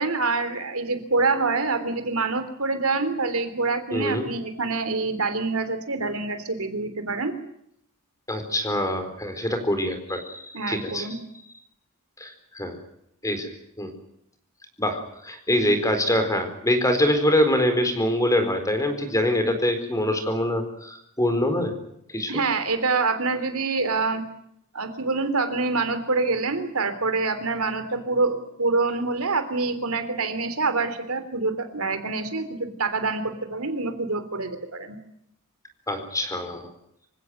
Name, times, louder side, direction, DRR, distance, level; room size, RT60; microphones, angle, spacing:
voice 1, 0.0-7.3 10.5-11.2 22.3-24.2 24.7-35.0, right 3 dB, 70° right, 9 dB, 3.4 m, -26 dB
voice 2, 3.9-4.3 8.3-11.1 12.2-12.8 13.2-13.5 13.8-13.9 14.8-21.7 22.1-22.4 35.9-36.7, left 1 dB, 15° left, 8 dB, 4.3 m, -24 dB
26.5 x 16.5 x 9.3 m, 0.75 s
head